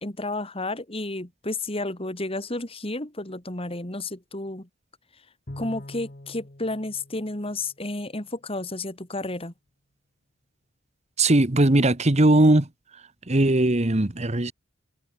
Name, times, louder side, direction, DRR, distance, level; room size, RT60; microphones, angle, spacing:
voice 1, 0.0-4.7 5.6-9.5, left 2 dB, 30° left, 3.0 m, -32 dB
Bowed string instrument, 5.5-8.1, left 1 dB, 45° left, 2.0 m, -44 dB
voice 2, 11.2-12.7 13.3-14.5, right 1 dB, 35° right, 1.3 m, -19 dB
head